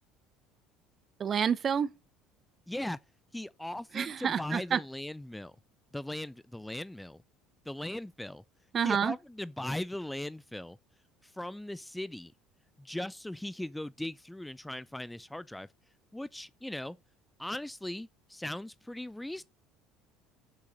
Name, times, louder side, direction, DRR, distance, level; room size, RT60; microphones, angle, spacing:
voice 1, 1.2-1.9 3.9-4.8 8.7-9.2, right 7 dB, 40° right, 0.8 m, -28 dB
voice 2, 2.7-3.0 3.3-5.5 5.9-7.2 7.7-8.4 8.8-10.8 11.2-12.3 12.8-15.7 16.1-17.0 17.4-19.4, left 1 dB, 5° left, 0.4 m, -39 dB
7.7 x 6.5 x 6.3 m
figure-of-eight pair, 60°, 0 cm